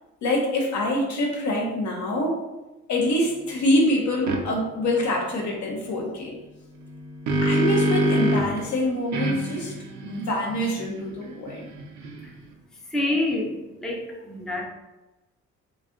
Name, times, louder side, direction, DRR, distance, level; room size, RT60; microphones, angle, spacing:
voice 1, 0.2-2.4 2.9-6.3 7.4-9.8 10.1-11.7, left 1 dB, 70° left, 1 dB, 0.8 m, -25 dB
sound 1, 4.3-4.4 6.8-8.6 9.1-12.5, right 1 dB, 70° right, 0.6 m, -26 dB
voice 2, 12.9-14.6, left 2 dB, ahead, -2 dB, 0.5 m, -27 dB
2.5 x 2.2 x 3.6 m, 1.1 s
cardioid pair, 90°, 30 cm